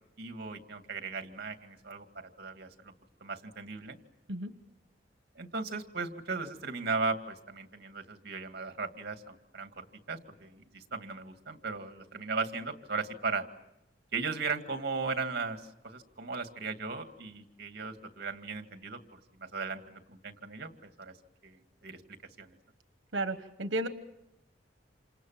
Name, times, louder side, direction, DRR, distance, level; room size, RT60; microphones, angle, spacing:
voice 1, 0.2-2.1 2.4-2.9 3.2-4.0 5.4-13.4 14.1-21.1 21.4-22.0 22.4-22.6, right 4 dB, 60° right, 7 dB, 2.2 m, -37 dB
voice 2, 23.1-23.9, right 2 dB, 80° right, 9 dB, 1.2 m, -33 dB
28.5 x 27.0 x 7.4 m, 0.86 s
head